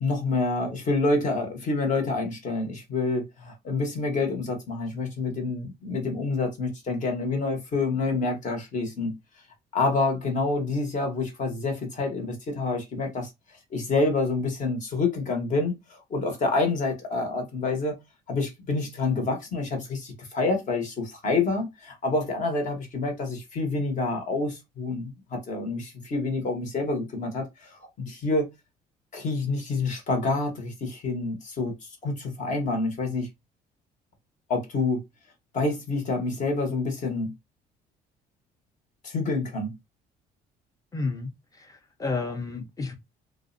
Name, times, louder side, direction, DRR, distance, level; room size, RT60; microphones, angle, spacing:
voice 1, 0.0-9.2 9.7-13.3 13.7-17.9 18.3-28.5 29.1-31.7 32.0-33.3 34.5-35.0 35.5-37.3 39.0-39.7, left 3 dB, 50° left, 0.9 m, -27 dB
voice 2, 40.9-41.3 41.6-43.0, left 3 dB, 20° left, 0.6 m, -31 dB
2.4 x 2.0 x 2.5 m
cardioid pair, 110°, 17 cm